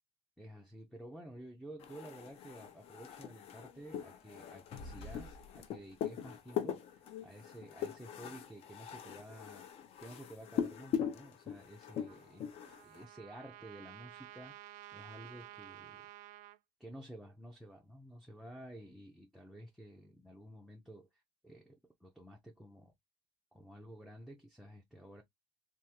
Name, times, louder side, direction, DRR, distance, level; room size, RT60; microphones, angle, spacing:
voice 1, 0.4-9.6 10.0-12.5 12.8-16.0 16.8-22.9 23.5-25.2, right 1 dB, ahead, 0.5 m, -52 dB
sound 1, 1.8-13.0, left 8 dB, 45° left, 0.6 m, -41 dB
Trumpet, 12.1-16.6, right 14 dB, 65° right, 0.5 m, -53 dB
3.5 x 2.4 x 2.8 m
cardioid pair, 155°, 14 cm